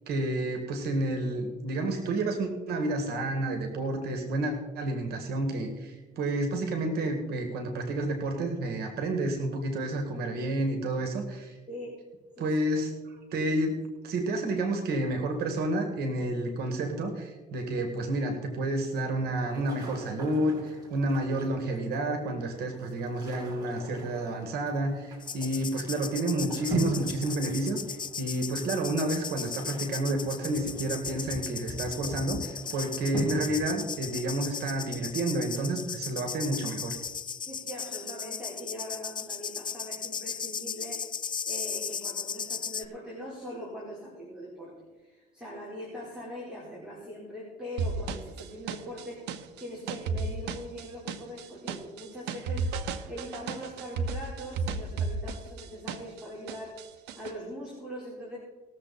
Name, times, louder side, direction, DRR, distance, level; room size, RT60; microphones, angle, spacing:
voice 1, 0.1-11.6 12.4-13.8 14.0-37.0, right 1 dB, 70° right, 5 dB, 2.0 m, -30 dB
sound 1, 18.8-35.6, right 1 dB, 25° right, 4.9 m, -41 dB
sound 2, 25.2-42.8, left 6 dB, 25° left, 0.5 m, -37 dB
voice 2, 37.5-41.0 41.4-44.7 45.0-49.3 49.6-52.7 53.1-56.8 57.1-58.4, equal, 5° right, -6 dB, 4.2 m, -41 dB
sound 3, 47.8-56.2 56.5-57.3, right 4 dB, 85° right, 1.0 m, -33 dB
19.5 x 7.4 x 4.2 m, 1.3 s
cardioid pair, 110°, 17 cm